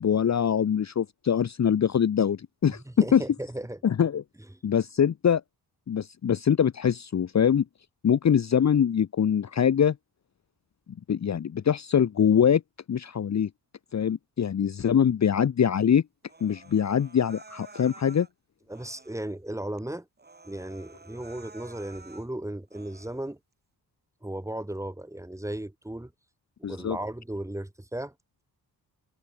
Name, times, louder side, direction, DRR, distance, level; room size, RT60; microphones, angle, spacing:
voice 1, 0.0-3.2 3.8-4.2 4.6-5.4 5.9-7.6 8.0-10.0 11.1-12.6 12.9-13.5 13.9-16.0 16.4-18.3 26.6-27.0, left 8 dB, 40° left, 0.9 m, -23 dB
voice 2, 2.9-3.8 18.7-20.1 20.4-23.4 24.2-26.1 26.6-28.1, right 1 dB, 5° right, 3.5 m, -35 dB
Human voice, 16.2-18.3 18.7-19.4 19.8-19.9 20.2-22.3 22.7-23.3, right 3 dB, 25° right, 6.9 m, -51 dB
wide cardioid pair, 125°, 40 cm